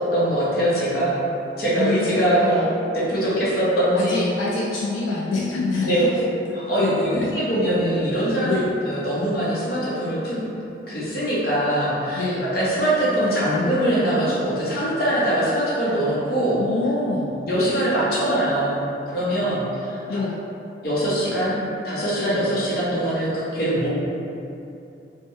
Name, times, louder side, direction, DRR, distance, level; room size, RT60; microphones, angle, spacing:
voice 1, 0.1-1.2 1.6-4.3 5.8-6.3 6.7-8.5 8.8-10.4 10.9-12.2 12.5-16.6 17.4-18.8 19.1-20.2 20.8-21.5 21.8-23.9, right 1 dB, 50° left, -8 dB, 0.8 m, -22 dB
voice 2, 1.8-2.7 3.9-6.0 6.8-7.3 8.5-8.7 12.2-12.4 16.6-17.4 20.1-20.4, left 3 dB, 85° left, -5 dB, 0.3 m, -25 dB
3.3 x 2.1 x 3.0 m, 2.7 s
head